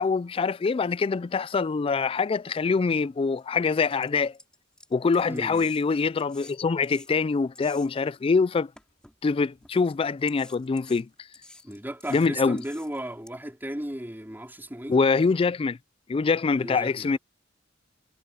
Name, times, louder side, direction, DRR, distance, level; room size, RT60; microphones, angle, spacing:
voice 1, 0.0-4.3 4.9-8.7 9.2-11.1 12.1-12.6 14.9-15.8 16.1-17.2, left 4 dB, 30° left, 0.3 m, -24 dB
sound 1, 2.8-2.9 3.4-3.5 3.8-8.2 8.8-9.7 10.3-13.3, left 1 dB, 5° left, 4.2 m, -51 dB
voice 2, 5.3-5.7 11.6-15.0 16.6-17.2, right 1 dB, 10° right, 4.2 m, -35 dB
head